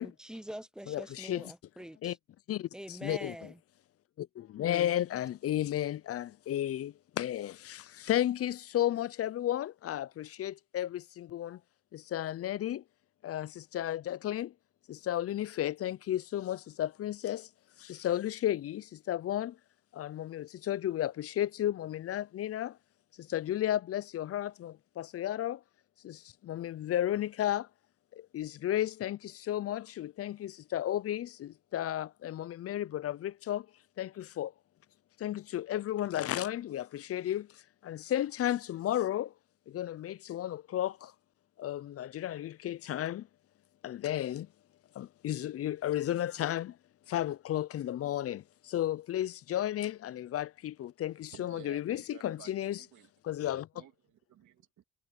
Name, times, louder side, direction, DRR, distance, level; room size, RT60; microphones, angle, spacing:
voice 1, 0.0-2.2 2.7-3.6, right 1 dB, ahead, 0.9 m, -45 dB
voice 2, 0.9-1.5 2.0-2.2 2.5-3.5 4.2-11.6 11.9-12.8 13.2-14.5 14.9-17.5 17.8-19.6 19.9-22.8 23.2-25.6 26.0-27.7 28.1-33.7 34.0-34.5 35.2-39.3 39.7-41.1 41.6-43.3 43.8-44.5 44.9-46.8 47.1-52.8 53.2-53.7, left 12 dB, 50° left, 0.5 m, -33 dB
voice 3, 51.1-53.1 53.8-54.8, right 11 dB, 75° right, 2.7 m, -54 dB
cardioid pair, 90°, 30 cm